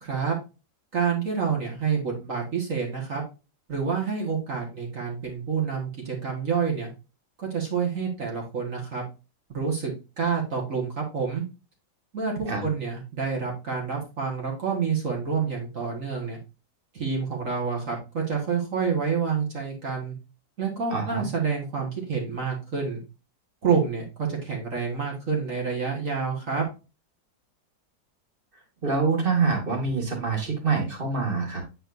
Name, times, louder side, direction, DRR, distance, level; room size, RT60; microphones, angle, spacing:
voice 1, 0.0-0.4 0.9-3.2 3.7-6.9 7.4-9.0 9.5-9.9 10.2-11.4 12.1-16.4 16.9-20.2 20.6-23.0 23.6-26.6, right 6 dB, 45° right, -1 dB, 1.8 m, -28 dB
voice 2, 20.9-21.3 28.8-31.6, right 4 dB, 30° right, 2 dB, 1.8 m, -25 dB
8.7 x 4.7 x 2.5 m, 0.29 s
omnidirectional pair, 2.0 m